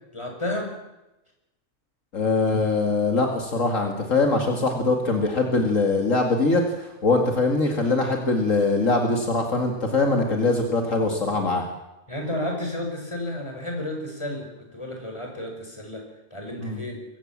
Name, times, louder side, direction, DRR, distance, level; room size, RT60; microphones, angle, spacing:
voice 1, 0.1-0.8 12.1-17.0, left 1 dB, 20° left, 2 dB, 5.7 m, -32 dB
voice 2, 2.1-11.7 16.6-16.8, left 3 dB, 65° left, 4 dB, 2.5 m, -22 dB
23.0 x 16.5 x 7.4 m, 0.95 s
omnidirectional pair, 1.4 m